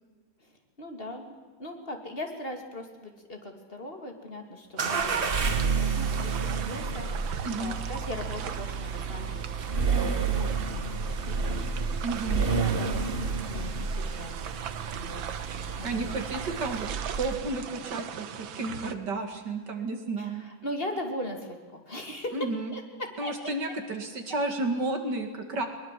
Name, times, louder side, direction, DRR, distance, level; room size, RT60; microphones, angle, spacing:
voice 1, 0.8-7.1 7.5-9.3 9.7-10.8 11.1-11.6 11.9-12.0 12.3-14.3 14.9-15.4 15.8-16.2 20.2-22.4 22.7-23.5, left 1 dB, 30° left, 4 dB, 2.7 m, -39 dB
sound 1, 4.8-17.6, right 5 dB, 35° right, 1.1 m, -30 dB
sound 2, 4.8-18.9, right 8 dB, 85° right, 1.8 m, -40 dB
voice 2, 12.0-12.5 15.8-16.9 17.2-20.5 22.3-22.7 23.2-25.7, right 2 dB, 60° right, 5 dB, 2.8 m, -32 dB
21.5 x 20.5 x 7.6 m, 1.4 s
omnidirectional pair, 2.1 m